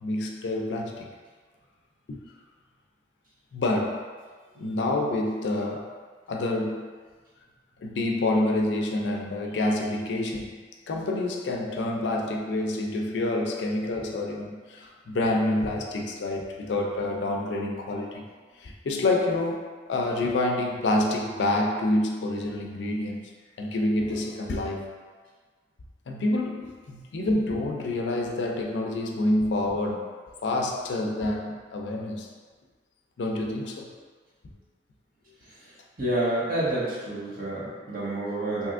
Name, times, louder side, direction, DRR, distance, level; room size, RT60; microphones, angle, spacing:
voice 1, 0.0-1.1 3.5-4.0 4.6-5.9 6.3-6.9 7.8-10.6 10.9-18.3 18.6-23.2 23.6-24.8 26.1-30.1 30.4-32.3 33.2-33.9, left 2 dB, 75° left, 1 dB, 0.4 m, -27 dB
voice 2, 36.0-38.7, right 1 dB, 50° right, -9 dB, 1.1 m, -28 dB
3.3 x 2.7 x 2.5 m, 1.5 s
head